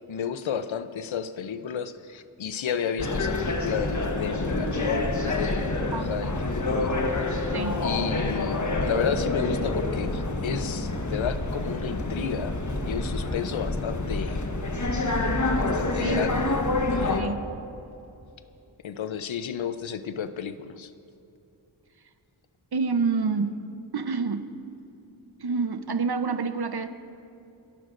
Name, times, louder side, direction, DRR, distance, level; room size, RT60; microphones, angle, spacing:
voice 1, 0.1-6.9 7.8-12.6 12.8-14.4 15.6-17.4 18.8-20.9, left 7 dB, 70° left, 12 dB, 0.7 m, -32 dB
sound 1, 3.0-17.2, left 2 dB, 35° left, 1.2 m, -27 dB
voice 2, 17.1-17.5 22.7-23.6 23.9-24.8 25.4-26.9, right 4 dB, 50° right, 10 dB, 0.8 m, -28 dB
28.0 x 11.0 x 2.6 m, 2.7 s
cardioid pair, 50°, 48 cm